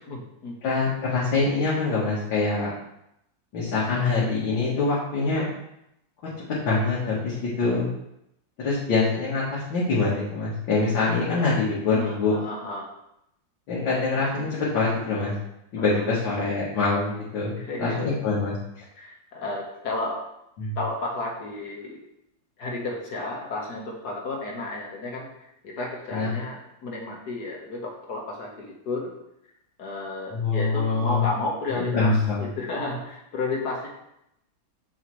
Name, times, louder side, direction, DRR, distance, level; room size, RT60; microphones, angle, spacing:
voice 1, 0.1-0.6 11.9-12.9 15.8-16.0 17.6-18.2 19.0-20.2 20.8-22.0 22.6-29.2 29.8-33.9, left 2 dB, 60° left, -1 dB, 1.7 m, -32 dB
voice 2, 0.6-2.7 3.5-5.5 6.6-7.9 8.6-9.4 9.7-12.4 13.7-15.3 15.7-18.8 20.6-20.8 26.1-26.3 30.3-31.3 31.7-32.5, left 3 dB, 90° left, -7 dB, 2.3 m, -24 dB
7.3 x 6.5 x 3.2 m, 0.81 s
omnidirectional pair, 2.0 m